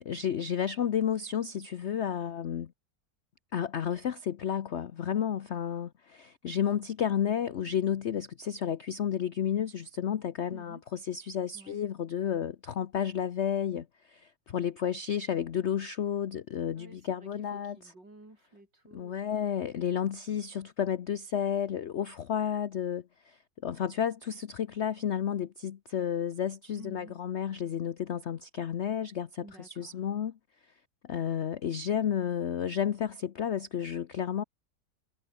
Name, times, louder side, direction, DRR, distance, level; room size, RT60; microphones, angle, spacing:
voice 1, 0.0-2.7 3.5-17.8 18.9-30.3 31.1-34.4, left 9 dB, 50° left, 0.8 m, -32 dB
voice 2, 10.5-10.8 11.5-11.8 16.8-19.3 26.8-27.2 29.4-30.1, right 2 dB, 75° right, 8.9 m, -52 dB
omnidirectional pair, 1.9 m